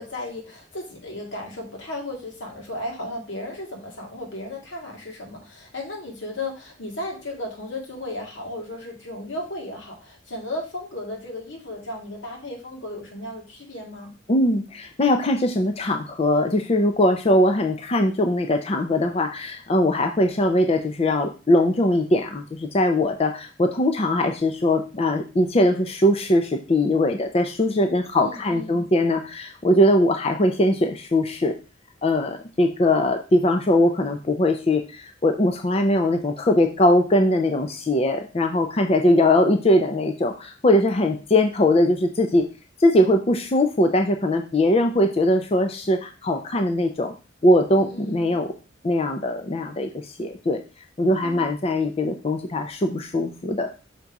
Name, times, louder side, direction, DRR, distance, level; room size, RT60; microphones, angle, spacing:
voice 1, 0.0-14.1 28.2-28.9 47.7-48.4 51.2-51.5, left 1 dB, 85° left, 0 dB, 2.1 m, -35 dB
voice 2, 14.3-31.6 32.0-42.5 42.8-47.1 47.4-48.5 48.8-50.6 51.0-53.7, left 1 dB, 35° left, 5 dB, 0.5 m, -21 dB
6.0 x 3.9 x 4.6 m, 0.32 s
head